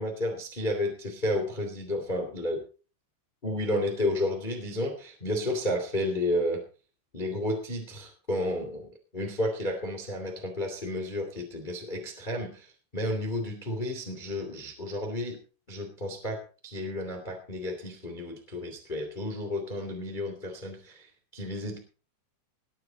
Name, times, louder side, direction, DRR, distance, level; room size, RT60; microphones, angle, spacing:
voice 1, 0.0-2.6 3.4-6.6 7.1-15.4 15.7-21.1 21.3-21.8, left 1 dB, 20° left, 3 dB, 1.2 m, -32 dB
19.5 x 9.0 x 4.0 m, 0.36 s
omnidirectional pair, 5.7 m